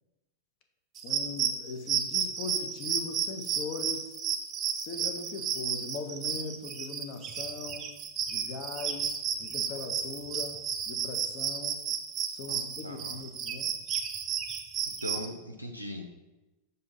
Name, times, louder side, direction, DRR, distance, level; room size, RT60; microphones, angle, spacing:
voice 1, 1.0-4.1 4.8-7.9 8.3-11.8 12.3-13.8, left 4 dB, 45° left, 5 dB, 0.7 m, -40 dB
sound 1, 1.0-15.3, right 8 dB, 30° right, 0.5 m, -32 dB
voice 2, 12.5-13.2 15.0-16.0, equal, 90° left, 3 dB, 0.5 m, -39 dB
6.5 x 2.7 x 5.4 m, 1.0 s
figure-of-eight pair, 90°, 0 cm